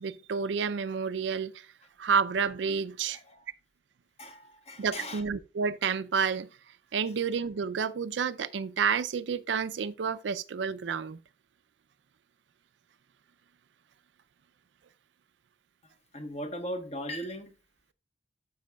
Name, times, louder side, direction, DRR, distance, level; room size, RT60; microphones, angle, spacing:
voice 1, 0.0-1.7 2.0-3.2 4.8-6.5 6.9-11.2, right 6 dB, 85° right, 0.4 m, -30 dB
voice 2, 3.1-3.4 4.2-5.2 15.8-17.5, equal, 40° left, 1.1 m, -39 dB
12.5 x 6.2 x 2.3 m
head